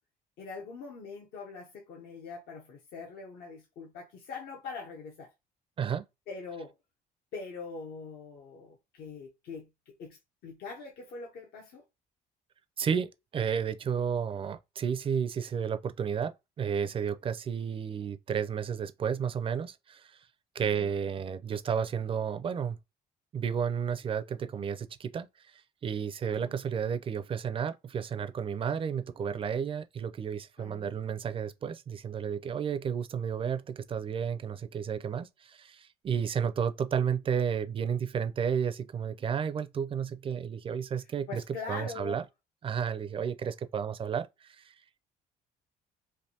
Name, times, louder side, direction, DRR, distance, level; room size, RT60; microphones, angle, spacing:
voice 1, 0.4-5.3 6.3-6.7 7.3-11.8 20.6-21.0 26.2-26.6 30.6-31.0 41.3-42.2, left 4 dB, 70° left, 0.8 m, -43 dB
voice 2, 12.8-20.1 20.5-22.8 23.3-25.3 25.8-41.4 41.7-42.2 42.6-44.7, right 7 dB, 35° right, 0.4 m, -32 dB
3.3 x 2.6 x 2.7 m
cardioid pair, 110°, 17 cm